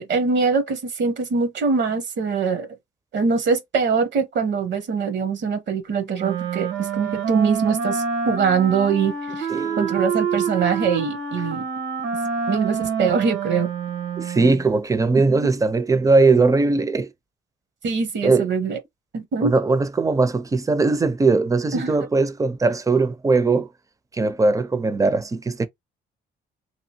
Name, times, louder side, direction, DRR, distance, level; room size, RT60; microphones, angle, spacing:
voice 1, 0.0-2.7 3.1-9.5 9.8-11.6 12.5-13.7 15.3-15.4 17.8-18.8 19.1-19.5 21.7-21.9, right 5 dB, 65° right, 0.9 m, -23 dB
Wind instrument woodwind instrument, 6.1-14.7, right 6 dB, 85° right, 1.2 m, -27 dB
voice 2, 9.5-9.9 14.2-17.1 18.2-18.5 19.4-23.7 24.1-25.7, right 3 dB, 15° right, 0.5 m, -20 dB
2.9 x 2.6 x 2.7 m
cardioid pair, 90°, 20 cm